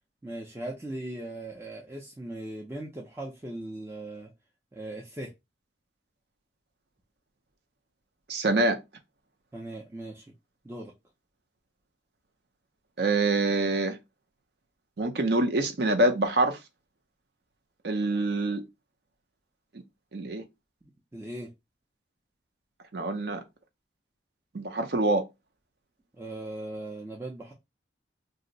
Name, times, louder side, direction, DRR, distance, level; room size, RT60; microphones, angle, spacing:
voice 1, 0.2-4.3 4.7-5.3 9.5-10.2 10.6-10.9 20.8-21.5 26.2-27.5, right 1 dB, 10° right, 0.4 m, -39 dB
voice 2, 8.3-8.8 13.0-14.0 15.0-16.6 17.8-18.6 20.1-20.4 22.9-23.4 24.5-25.2, right 2 dB, 60° right, 0.5 m, -25 dB
2.6 x 2.0 x 3.8 m
head